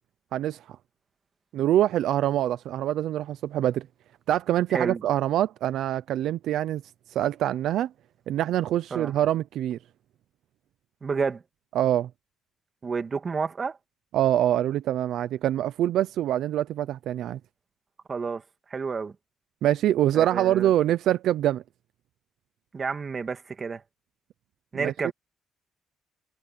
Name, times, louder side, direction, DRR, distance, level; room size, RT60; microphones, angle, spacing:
voice 1, 0.3-0.8 1.5-3.9 4.3-6.8 7.1-7.9 8.3-9.8 11.7-12.1 14.1-17.4 19.6-21.6 24.7-25.1, right 12 dB, 80° right, 0.6 m, -25 dB
voice 2, 11.0-11.4 12.8-13.8 18.1-18.4 18.7-19.1 20.1-20.7 22.7-23.8 24.7-25.1, right 5 dB, 40° right, 2.3 m, -30 dB
cardioid pair, 90°, 0 cm